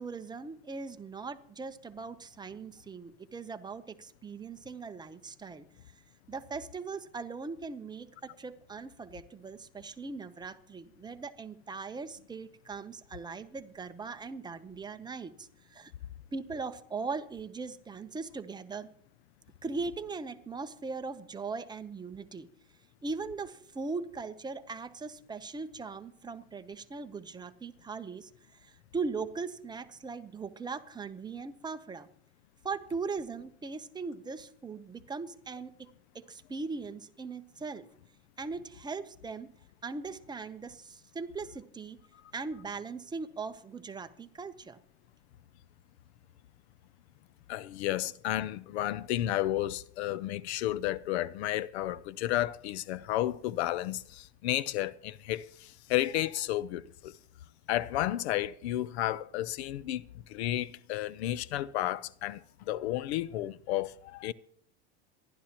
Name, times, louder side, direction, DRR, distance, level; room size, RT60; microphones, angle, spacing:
voice 1, 0.0-5.6 6.3-15.9 16.3-18.9 19.6-22.5 23.0-28.3 28.6-32.1 32.6-37.9 38.4-39.5 39.8-42.0 42.3-44.8, right 4 dB, 15° right, 0.8 m, -39 dB
voice 2, 47.5-57.1 57.7-60.0 60.3-62.4 62.7-64.3, left 14 dB, 85° left, 0.6 m, -32 dB
27.0 x 11.5 x 2.9 m
supercardioid pair, 130°, 32 cm